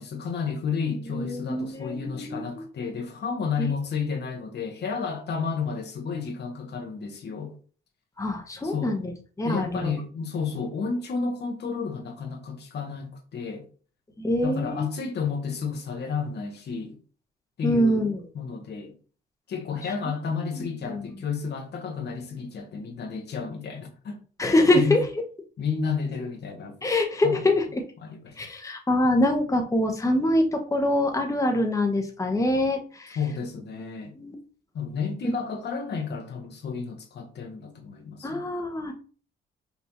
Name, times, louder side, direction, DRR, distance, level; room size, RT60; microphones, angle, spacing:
voice 1, 0.0-7.5 8.6-9.0 9.4-13.7 14.4-17.0 17.6-18.1 18.3-18.9 19.5-24.2 24.7-25.0 25.6-26.7 27.2-27.4 28.0-28.3 33.1-34.1 34.7-38.4, left 5 dB, 60° left, 1.1 m, -31 dB
voice 2, 1.1-2.6 3.6-3.7 8.2-9.1 9.4-9.9 14.2-14.8 17.6-18.2 20.6-21.1 24.4-25.0 26.8-27.8 28.4-33.2 34.2-34.3 35.2-35.3 38.2-38.9, left 1 dB, 15° left, 0.9 m, -24 dB
5.5 x 2.6 x 2.9 m
cardioid pair, 90°, 20 cm